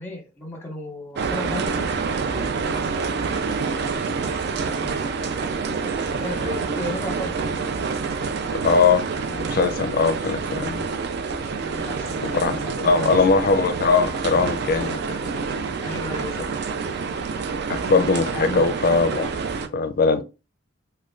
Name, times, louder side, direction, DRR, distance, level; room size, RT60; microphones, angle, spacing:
voice 1, 0.0-2.5 4.4-5.1 6.2-7.4 11.6-13.4 15.8-16.3 18.3-18.6, left 1 dB, 10° left, 0.8 m, -34 dB
sound 1, 1.2-19.7, right 5 dB, 55° right, 0.4 m, -27 dB
voice 2, 8.6-10.9 12.2-12.5 12.8-15.4 17.7-19.3 19.7-20.2, left 4 dB, 50° left, 0.4 m, -21 dB
3.1 x 2.2 x 3.7 m
head